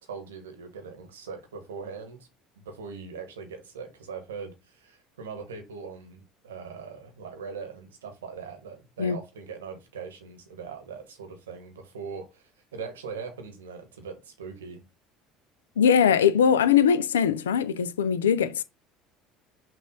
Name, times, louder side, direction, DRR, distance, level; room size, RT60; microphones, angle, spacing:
voice 1, 0.0-2.3 2.6-12.4 12.7-14.8, right 5 dB, 90° right, 1.1 m, -40 dB
voice 2, 15.8-18.6, left 8 dB, 85° left, 0.3 m, -21 dB
6.0 x 2.4 x 3.6 m
hypercardioid pair, 70°, 0 cm